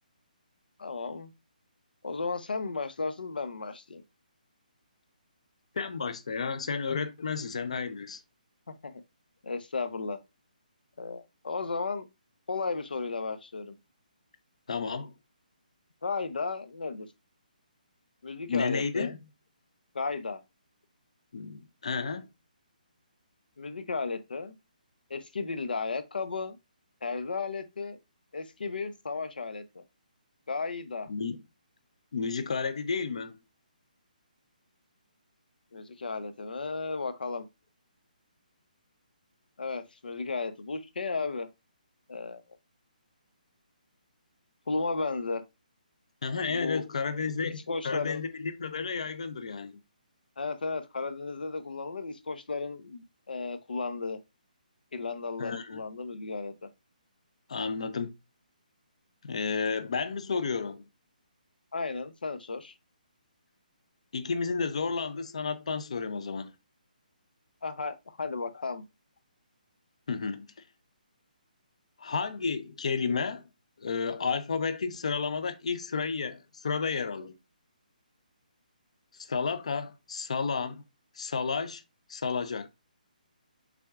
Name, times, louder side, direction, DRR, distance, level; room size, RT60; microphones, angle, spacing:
voice 1, 0.8-1.3 2.0-4.0 8.7-9.0 9.4-10.2 11.0-12.1 12.5-13.8 16.0-17.1 18.2-19.2 19.9-20.4 23.6-24.6 25.1-26.6 27.0-28.0 28.3-29.8 30.5-31.1 35.7-37.5 39.6-41.5 42.1-42.4 44.7-45.4 46.5-46.8 47.2-47.3 47.7-48.2 50.4-54.2 54.9-56.7 61.7-62.7 67.6-68.8, left 4 dB, 85° left, 0.8 m, -34 dB
voice 2, 5.8-8.2 14.7-15.1 18.5-19.2 21.3-22.3 31.1-31.4 32.1-33.4 46.2-49.8 55.4-55.8 57.5-58.1 59.2-60.8 64.1-66.5 70.1-70.5 72.0-73.5 73.8-77.4 79.2-80.8 81.2-81.8 82.1-82.7, left 5 dB, 45° left, 0.6 m, -32 dB
5.9 x 3.5 x 2.4 m
hypercardioid pair, 180°, 5 cm